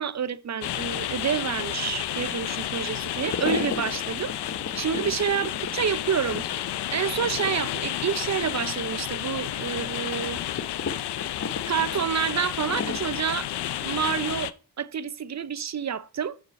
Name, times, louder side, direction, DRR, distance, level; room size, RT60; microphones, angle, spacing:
voice 1, 0.0-4.3 4.8-6.4 6.9-10.4 11.7-13.5 13.8-16.4, right 7 dB, 45° right, 0.6 m, -28 dB
sound 1, 0.6-14.5, left 12 dB, 85° left, 0.6 m, -31 dB
sound 2, 3.1-13.0, left 5 dB, 40° left, 0.9 m, -37 dB
10.5 x 5.1 x 4.2 m
cardioid pair, 70°, 39 cm